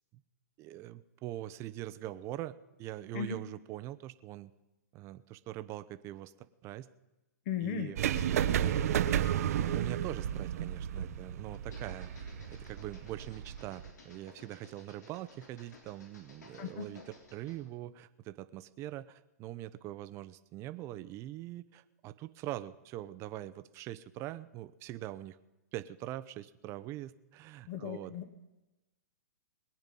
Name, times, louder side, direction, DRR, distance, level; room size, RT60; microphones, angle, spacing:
voice 1, 0.6-4.5 4.9-6.9 7.6-8.0 9.4-25.4 25.7-28.1, right 14 dB, 30° right, 14 dB, 0.7 m, -43 dB
voice 2, 7.5-7.9 16.6-16.8 27.7-28.3, left 8 dB, 45° left, 9 dB, 1.4 m, -36 dB
sound 1, 8.0-13.9, right 10 dB, 60° right, 0.9 m, -32 dB
sound 2, 11.5-17.7, left 2 dB, 80° left, 3.8 m, -57 dB
21.5 x 9.0 x 5.4 m, 1.0 s
hypercardioid pair, 130°, 9 cm